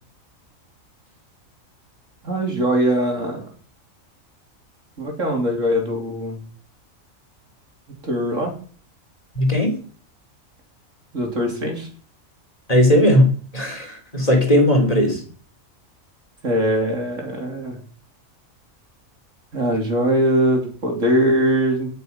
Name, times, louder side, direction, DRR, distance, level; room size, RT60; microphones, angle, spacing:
voice 1, 2.2-3.4 5.0-6.4 8.0-8.5 11.1-11.9 16.4-17.8 19.5-21.9, right 1 dB, 70° right, 1 dB, 3.6 m, -21 dB
voice 2, 9.3-9.8 12.7-15.2, left 1 dB, 30° left, 2 dB, 3.0 m, -17 dB
18.0 x 6.8 x 5.4 m, 0.42 s
omnidirectional pair, 1.4 m